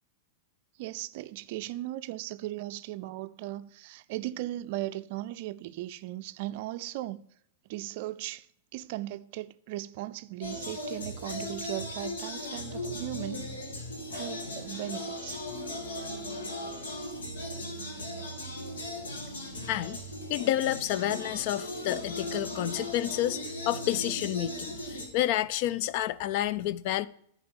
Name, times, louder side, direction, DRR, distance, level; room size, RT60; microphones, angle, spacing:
voice 1, 0.8-7.2 7.7-13.4 14.1-15.4, right 16 dB, 55° right, 0.4 m, -37 dB
sound 1, 10.4-25.1, left 1 dB, 75° left, 1.7 m, -37 dB
voice 2, 19.7-20.0 20.3-27.1, left 13 dB, 50° left, 0.4 m, -30 dB
10.0 x 4.9 x 5.5 m
hypercardioid pair, 100°, 0 cm